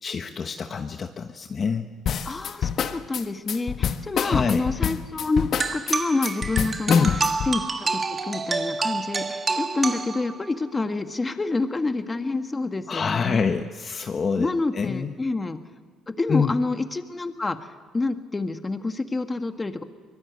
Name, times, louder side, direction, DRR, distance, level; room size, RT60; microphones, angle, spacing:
voice 1, 0.0-1.9 4.2-4.6 6.9-7.2 12.9-15.1 16.3-16.5, left 5 dB, 40° left, 6 dB, 1.2 m, -25 dB
sound 1, 2.1-7.6, left 8 dB, 55° left, 1.2 m, -27 dB
voice 2, 2.2-7.1 7.5-13.4 14.4-15.6 16.1-19.8, left 3 dB, 20° left, 7 dB, 1.6 m, -28 dB
sound 2, 5.6-10.6, right 4 dB, 30° right, 1.6 m, -28 dB
24.5 x 21.5 x 8.1 m, 1.5 s
cardioid pair, 105°, 0 cm